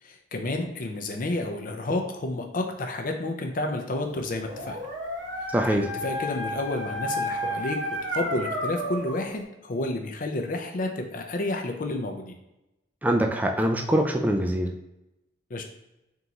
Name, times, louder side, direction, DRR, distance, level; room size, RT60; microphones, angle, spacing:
voice 1, 0.0-4.8 5.7-7.8 8.1-12.4 15.5-15.6, left 2 dB, 45° left, 3 dB, 0.5 m, -30 dB
Dog, 4.2-9.3, equal, 80° right, 0.9 m, -32 dB
voice 2, 5.5-5.9 13.0-14.7, right 1 dB, 10° right, 3 dB, 0.3 m, -23 dB
3.6 x 2.9 x 3.9 m, 0.93 s
head